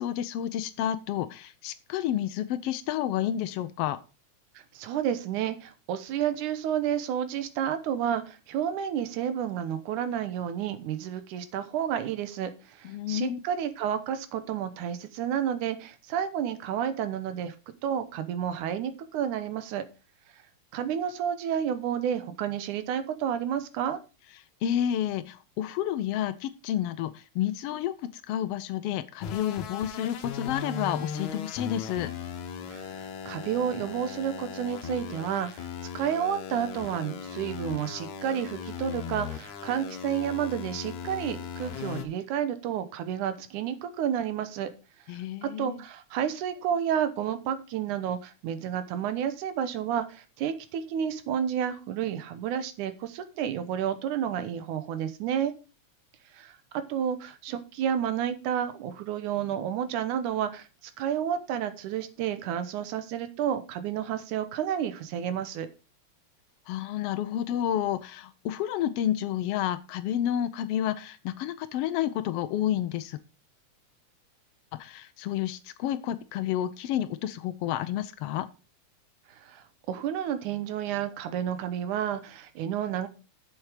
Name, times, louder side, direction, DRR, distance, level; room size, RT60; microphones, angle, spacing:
voice 1, 0.0-4.0 12.8-13.4 24.6-32.1 45.1-45.8 66.7-73.2 74.7-78.5, left 11 dB, 90° left, 12 dB, 1.3 m, -30 dB
voice 2, 4.6-17.6 17.8-19.9 20.7-24.0 32.7-35.7 35.9-44.7 45.4-55.5 56.3-65.7 79.4-83.1, right 9 dB, 85° right, 11 dB, 2.5 m, -31 dB
sound 1, 29.2-42.0, left 7 dB, 75° left, 2.4 m, -38 dB
7.9 x 7.3 x 5.0 m, 0.32 s
omnidirectional pair, 3.5 m